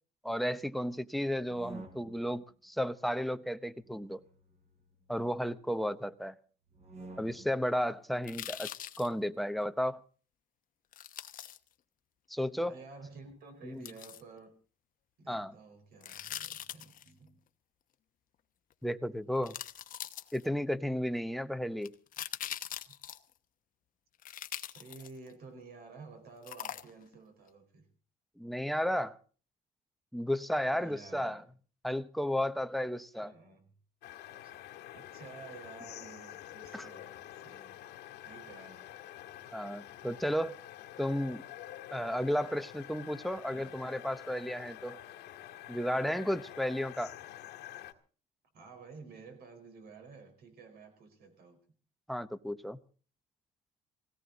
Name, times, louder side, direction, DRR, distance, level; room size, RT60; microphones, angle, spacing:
voice 1, 0.2-4.2 5.1-6.3 7.2-8.7 9.0-10.0 12.3-12.7 13.6-13.8 15.3-15.5 18.8-19.5 20.3-21.9 28.4-29.2 30.1-31.4 31.8-33.3 36.7-36.9 39.5-40.5 41.0-41.4 41.9-45.0 45.7-47.1 52.1-52.8, equal, ahead, 0.9 m, -33 dB
sound 1, 1.4-2.4 3.7-5.4 6.7-7.7, right 3 dB, 40° right, 3.7 m, -51 dB
sound 2, 8.2-9.1 10.9-11.6 13.9-14.2 16.0-17.1 18.7-18.8 19.4-20.6 21.8-23.3 24.2-25.3 26.4-27.1 27.5-27.6, left 11 dB, 55° left, 1.0 m, -42 dB
voice 2, 12.6-14.6 15.2-17.4 22.9-23.0 24.7-27.9 30.6-31.5 32.8-33.7 34.4-34.5 34.9-37.8 38.2-38.9 43.2-43.8 48.5-51.6, right 4 dB, 65° right, 4.9 m, -52 dB
sound 3, 34.0-47.9, left 12 dB, 80° left, 1.8 m, -48 dB
19.5 x 17.0 x 4.1 m
cardioid pair, 110°, 17 cm